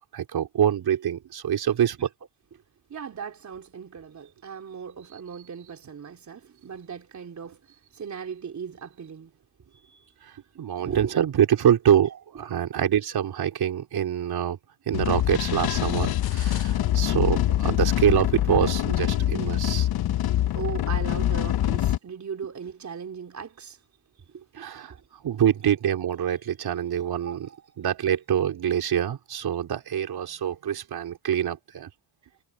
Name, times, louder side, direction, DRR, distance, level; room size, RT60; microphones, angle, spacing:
voice 1, 0.1-2.1 10.6-14.6 14.9-19.9 24.5-24.9 25.2-27.5 27.8-31.9, right 9 dB, 60° right, 4.0 m, -25 dB
voice 2, 2.9-7.6 7.9-9.3 10.5-11.2 12.1-12.2 12.6-12.8 19.4-19.7 20.2-23.8 24.3-25.1 27.2-27.6, right 6 dB, 40° right, 3.7 m, -38 dB
sound 1, 14.9-22.0, left 13 dB, 60° left, 0.9 m, -24 dB
cardioid pair, 85°, 42 cm